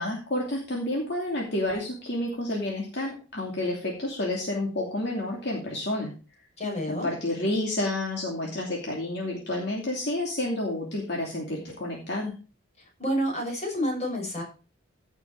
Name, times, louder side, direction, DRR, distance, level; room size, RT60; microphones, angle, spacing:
voice 1, 0.0-6.1 6.9-12.3, left 1 dB, 60° left, -1 dB, 2.8 m, -30 dB
voice 2, 6.6-7.1 13.0-14.4, equal, 35° left, 0 dB, 6.2 m, -29 dB
16.0 x 6.4 x 4.6 m, 0.34 s
head